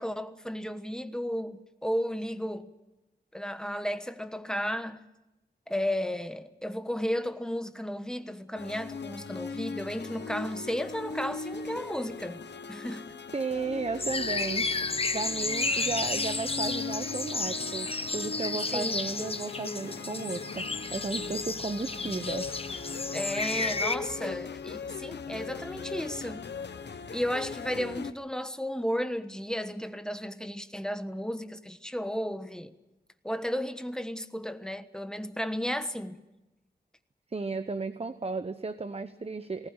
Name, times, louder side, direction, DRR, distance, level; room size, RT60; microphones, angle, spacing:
voice 1, 0.0-2.7 3.3-5.0 5.7-12.4 12.7-13.1 18.7-18.9 23.1-26.4 27.1-32.7 33.2-36.2, equal, 5° left, 1.2 m, -33 dB
sound 1, 8.6-28.1, left 5 dB, 85° left, 1.2 m, -39 dB
voice 2, 13.3-14.7 15.1-22.5 37.3-39.7, right 3 dB, 35° right, 0.9 m, -34 dB
sound 2, 14.0-23.9, left 3 dB, 35° left, 1.1 m, -32 dB
20.0 x 19.0 x 8.9 m
wide cardioid pair, 85°, 17 cm